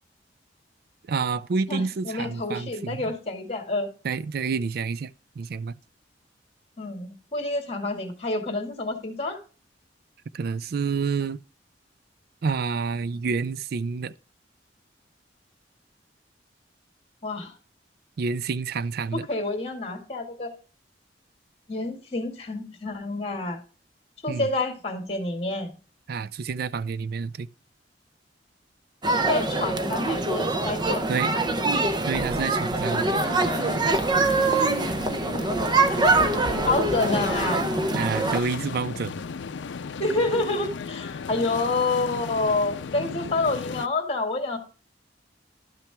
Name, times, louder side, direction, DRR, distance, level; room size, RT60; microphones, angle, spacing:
voice 1, 1.1-3.1 4.0-5.1 5.4-5.7 10.3-11.4 12.4-14.1 18.2-19.2 24.3-24.5 26.1-27.5 31.1-31.3 32.0-33.1 37.9-39.1, right 5 dB, 55° right, 0.4 m, -28 dB
voice 2, 1.7-3.9 6.8-9.4 17.2-17.6 19.1-20.5 21.7-23.6 24.2-25.7 29.2-31.5 36.7-37.7 40.0-44.6, left 2 dB, 35° left, 1.9 m, -28 dB
sound 1, 29.0-38.4, right 2 dB, 25° right, 0.7 m, -24 dB
sound 2, 32.8-43.9, left 5 dB, 80° left, 0.5 m, -36 dB
12.0 x 5.8 x 3.4 m
head